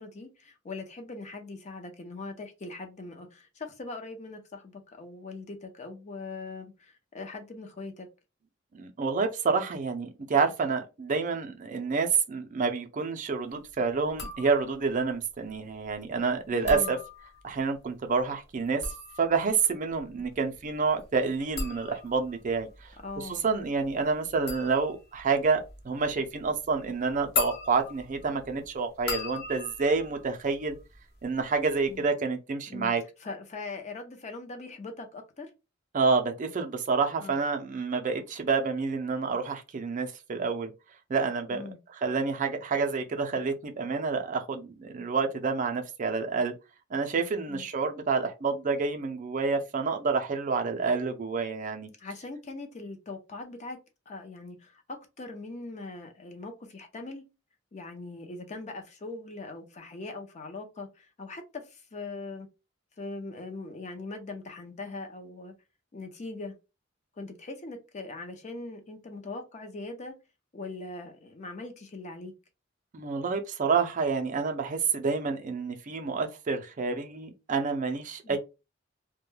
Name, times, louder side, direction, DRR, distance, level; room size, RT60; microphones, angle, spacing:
voice 1, 0.0-8.1 16.5-16.9 23.0-23.5 31.9-32.1 32.7-35.5 37.2-37.4 41.5-41.8 47.5-47.7 52.0-53.8 54.1-57.2 57.7-62.5 63.0-65.5 65.9-66.5 67.2-70.1 70.5-72.3 78.2-78.4, left 3 dB, 35° left, 0.5 m, -41 dB
voice 2, 8.7-17.0 17.4-18.8 19.2-30.8 31.2-33.0 35.9-40.7 41.1-41.6 42.0-46.5 46.9-51.9 72.9-78.4, right 4 dB, 40° right, 0.4 m, -28 dB
sound 1, 14.1-14.9 16.5-17.6 18.5-31.3 31.5-32.1, left 4 dB, 55° left, 0.9 m, -39 dB
2.2 x 2.1 x 3.1 m
head